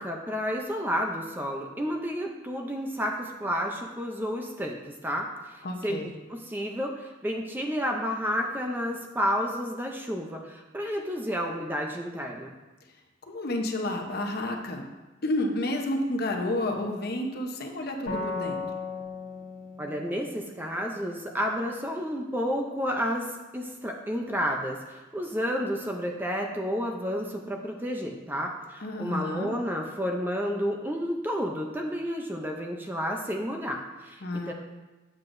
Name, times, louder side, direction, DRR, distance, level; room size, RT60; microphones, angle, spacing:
voice 1, 0.0-12.5 19.8-34.5, equal, 10° right, 1 dB, 0.5 m, -31 dB
voice 2, 5.6-6.1 13.3-14.9 15.2-18.6 28.8-29.5 34.2-34.5, left 1 dB, 50° left, 2 dB, 0.9 m, -30 dB
sound 1, 18.1-21.6, left 4 dB, 70° left, 1.6 m, -37 dB
7.8 x 7.5 x 2.6 m, 1.2 s
head